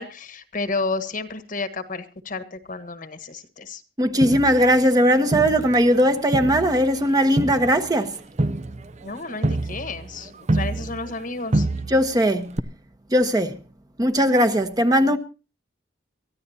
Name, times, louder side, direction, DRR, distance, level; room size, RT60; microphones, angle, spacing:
voice 1, 0.0-3.8 9.0-11.7, left 3 dB, 50° left, 1.4 m, -31 dB
voice 2, 4.0-8.1 11.9-12.6 13.1-13.6 14.0-15.2, equal, 20° right, 1.2 m, -19 dB
Crowd, 4.2-6.0 6.3-11.2 11.5-12.2 12.6-12.7, right 2 dB, 40° right, 0.7 m, -27 dB
23.5 x 14.5 x 2.8 m
head